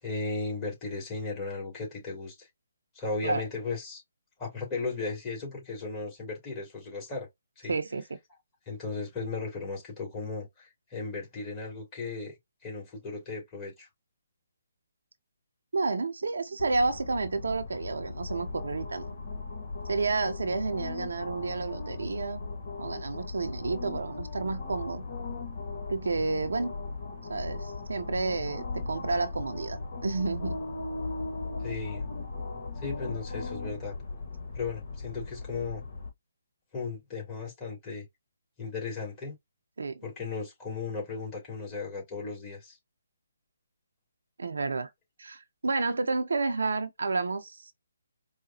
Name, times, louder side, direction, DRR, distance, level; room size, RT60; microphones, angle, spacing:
voice 1, 0.0-2.5 2.9-4.0 4.4-7.3 7.6-7.7 8.7-12.4 12.6-13.9 31.6-32.1 32.8-33.9 34.5-35.8 36.7-38.1 38.6-39.3 40.0-42.8, left 4 dB, 20° left, 2.8 m, -36 dB
voice 2, 7.7-8.2 15.7-19.1 19.9-22.4 22.8-25.0 25.9-26.7 27.3-30.6 39.8-40.0 44.4-44.9 45.2-47.7, right 3 dB, 75° right, 0.7 m, -30 dB
sound 1, 16.6-36.1, left 3 dB, 55° left, 1.3 m, -38 dB
4.9 x 2.2 x 2.8 m
figure-of-eight pair, 145°, 0 cm